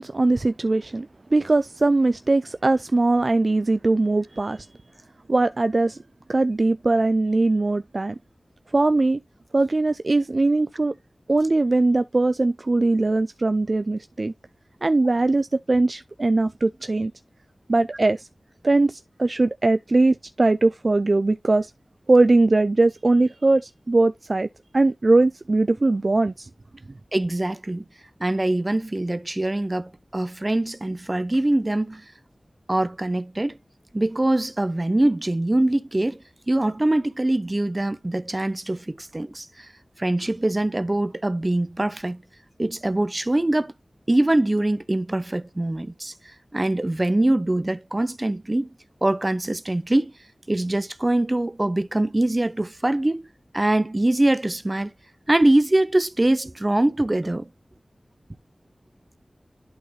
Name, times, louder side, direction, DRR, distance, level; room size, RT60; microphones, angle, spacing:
voice 1, 0.0-4.7 5.3-6.0 6.3-8.2 8.7-9.2 9.5-10.9 11.3-14.3 14.8-17.1 17.7-18.3 18.6-21.7 22.1-24.5 24.7-26.5, right 2 dB, 50° right, 0.3 m, -20 dB
voice 2, 27.1-27.8 28.2-32.0 32.7-33.6 33.9-36.2 36.5-39.7 40.0-42.2 42.6-43.7 44.1-46.1 46.5-48.7 49.0-50.1 50.5-53.3 53.5-54.9 55.3-57.5, right 1 dB, 30° right, 0.7 m, -23 dB
11.0 x 4.0 x 3.2 m
wide cardioid pair, 80°, 0 cm